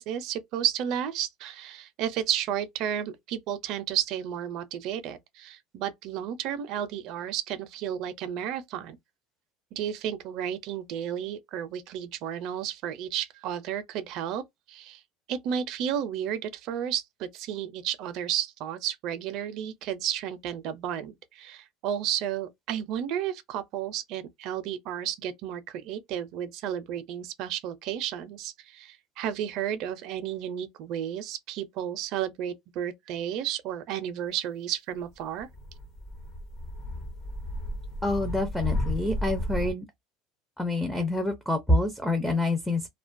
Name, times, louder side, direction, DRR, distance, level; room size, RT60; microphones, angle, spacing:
voice 1, 0.0-9.0 9.7-14.4 14.7-15.0 15.3-35.5, right 10 dB, 55° right, 0.4 m, -32 dB
sound 1, 35.4-39.7, left 1 dB, 50° left, 0.7 m, -33 dB
voice 2, 38.0-39.8 40.6-42.9, left 2 dB, 5° left, 0.4 m, -27 dB
2.4 x 2.2 x 2.5 m
supercardioid pair, 135°, 0 cm